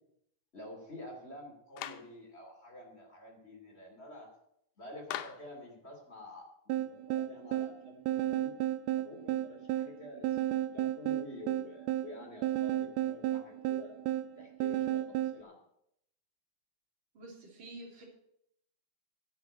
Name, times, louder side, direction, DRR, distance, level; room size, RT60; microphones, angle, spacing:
voice 1, 0.5-4.3 4.8-8.5 9.0-10.4 10.7-14.0 14.4-15.6, left 1 dB, 20° left, 0 dB, 2.5 m, -49 dB
Clapping, 1.8-2.1 5.1-5.5, left 12 dB, 85° left, 2.3 m, -40 dB
sound 1, 6.7-15.4, right 13 dB, 85° right, 1.5 m, -33 dB
voice 2, 17.1-18.0, right 2 dB, 40° right, -1 dB, 3.5 m, -48 dB
10.5 x 7.5 x 8.7 m, 0.74 s
omnidirectional pair, 3.5 m